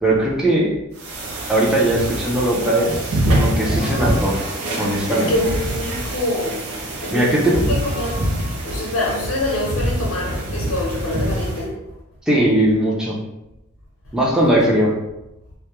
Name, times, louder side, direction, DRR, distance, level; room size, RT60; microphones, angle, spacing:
voice 1, 0.0-0.7 1.5-4.4 4.8-5.3 7.1-7.6 12.3-13.2 14.1-14.9, right 1 dB, 5° right, -4 dB, 0.4 m, -19 dB
sound 1, 1.0-11.7, right 1 dB, 80° right, 0.5 m, -25 dB
sound 2, 3.8-5.1 7.8-9.0, left 1 dB, 45° right, 0.9 m, -40 dB
voice 2, 5.1-6.6 7.0-8.2 8.6-11.8 14.4-14.5, left 1 dB, 80° left, -4 dB, 0.6 m, -25 dB
2.2 x 2.0 x 2.9 m, 0.92 s
head